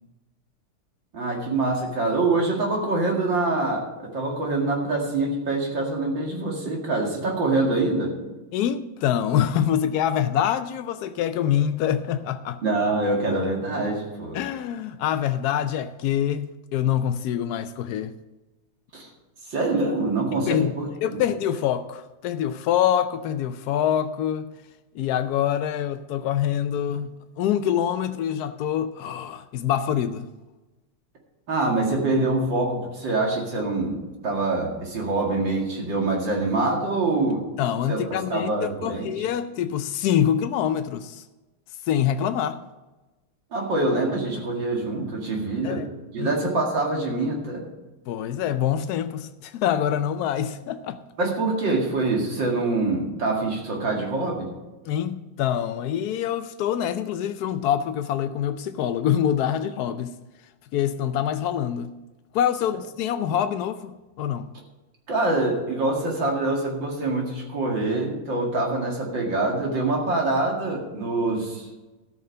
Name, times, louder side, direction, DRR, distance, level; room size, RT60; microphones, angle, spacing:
voice 1, 1.1-8.1 12.6-14.4 18.9-19.1 19.5-20.9 21.1-21.2 31.5-37.4 37.9-39.1 43.5-45.8 46.1-47.6 51.2-54.5 65.1-71.7, right 2 dB, 65° right, 2.8 m, -25 dB
voice 2, 8.5-12.6 14.3-18.1 20.5-24.5 24.9-30.3 37.6-41.2 41.8-42.6 45.6-45.9 46.2-46.3 48.1-51.0 54.8-60.2 60.7-61.9 62.3-64.5, left 10 dB, 85° left, 0.8 m, -25 dB
13.5 x 6.2 x 6.6 m
omnidirectional pair, 2.3 m